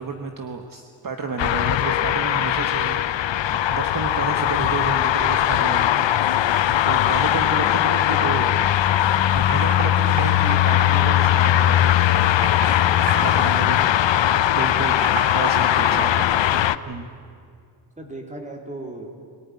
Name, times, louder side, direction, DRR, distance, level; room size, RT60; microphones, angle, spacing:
voice 1, 0.0-3.2 3.5-6.1 6.8-8.5 9.3-12.0 12.6-13.9 14.6-15.1 15.3-16.4 16.9-17.1, right 4 dB, 40° right, 4 dB, 1.3 m, -31 dB
sound 1, 1.4-16.8, left 12 dB, 65° left, 0.7 m, -19 dB
voice 2, 7.9-8.6 15.8-16.1 16.3-16.8 18.0-19.1, right 1 dB, 15° right, 2 dB, 3.1 m, -37 dB
Computer keyboard, 9.1-9.2 9.5-9.8 10.2-11.7 12.0-12.8 13.1-13.5 13.8-16.1, right 3 dB, 60° right, 3.7 m, -31 dB
23.5 x 18.5 x 9.7 m, 2.2 s
wide cardioid pair, 165°, 49 cm